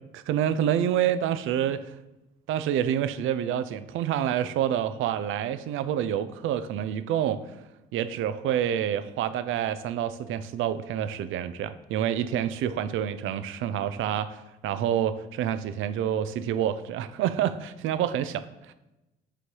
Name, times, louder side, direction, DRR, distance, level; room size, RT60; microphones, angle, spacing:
voice 1, 0.1-1.9 2.5-7.4 7.9-18.7, right 10 dB, 80° right, 12 dB, 0.5 m, -28 dB
6.6 x 3.2 x 5.3 m, 0.97 s
cardioid pair, 90°, 20 cm